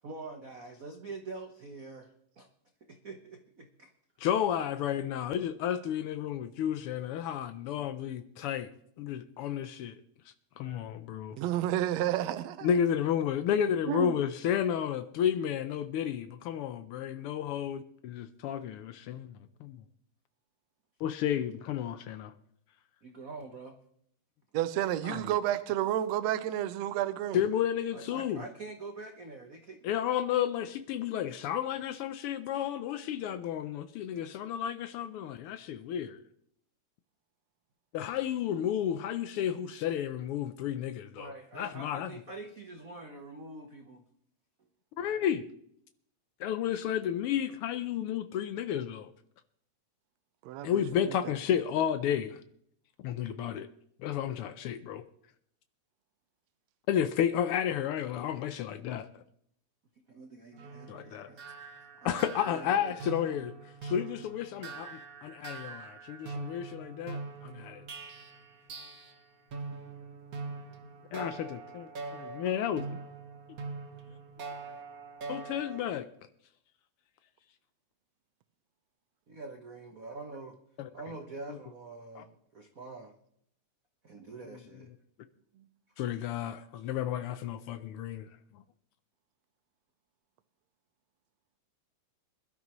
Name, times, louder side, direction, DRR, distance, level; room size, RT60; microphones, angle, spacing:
voice 1, 0.0-2.5 2.8-3.9 23.0-23.8 27.9-30.0 41.2-44.0 44.6-44.7 60.1-61.4 62.0-63.0 79.3-80.6 80.9-83.1 84.0-84.9, right 3 dB, 90° right, 0.7 m, -45 dB
voice 2, 4.2-8.7 9.0-10.0 10.6-11.4 12.6-19.8 21.0-22.3 25.0-25.2 27.3-28.4 29.8-36.2 37.9-42.1 45.0-45.5 46.4-49.1 50.6-52.4 53.0-53.7 54.0-55.0 56.9-59.2 60.9-61.3 62.0-63.5 63.8-67.8 71.1-72.8 75.3-76.1 80.8-80.9 81.5-81.6 82.1-82.2 86.0-88.3, left 9 dB, 90° left, 1.2 m, -32 dB
voice 3, 11.4-12.7 13.9-14.2 24.5-27.4 50.5-50.7 51.1-51.2, right 12 dB, 75° right, 1.9 m, -30 dB
sound 1, 60.5-69.2 69.5-76.0, right 4 dB, 55° right, 1.0 m, -43 dB
21.5 x 12.5 x 3.1 m
omnidirectional pair, 3.3 m